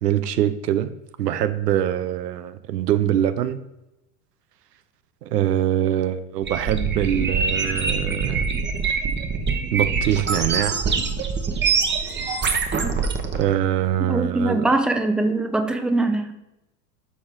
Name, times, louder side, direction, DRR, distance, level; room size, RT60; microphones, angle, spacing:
voice 1, 0.0-0.9 1.2-3.6 5.2-8.5 9.7-10.8 13.3-14.7, right 11 dB, 85° right, 12 dB, 0.8 m, -23 dB
sound 1, 6.4-13.4, right 5 dB, 25° right, 1.2 m, -24 dB
voice 2, 14.1-16.3, right 2 dB, ahead, 6 dB, 0.8 m, -22 dB
12.5 x 4.3 x 3.7 m, 0.93 s
hypercardioid pair, 90°, 47 cm